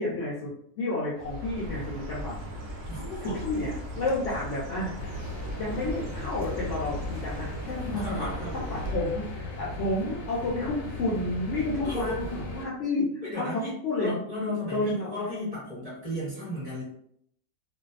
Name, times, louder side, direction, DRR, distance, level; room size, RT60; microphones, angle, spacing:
voice 1, 0.0-2.3 3.2-5.1 5.6-8.3 8.5-15.3, left 2 dB, 65° left, -6 dB, 0.8 m, -31 dB
Chirp tweet, 1.2-9.0, equal, 65° right, 0.8 m, -38 dB
voice 2, 2.9-3.5 7.8-8.5 11.8-12.2 13.2-13.7 14.0-16.8, left 1 dB, 25° right, -9 dB, 1.1 m, -34 dB
sound 1, 5.0-12.7, left 1 dB, 80° left, 1.2 m, -37 dB
2.6 x 2.2 x 2.4 m, 0.68 s
omnidirectional pair, 1.6 m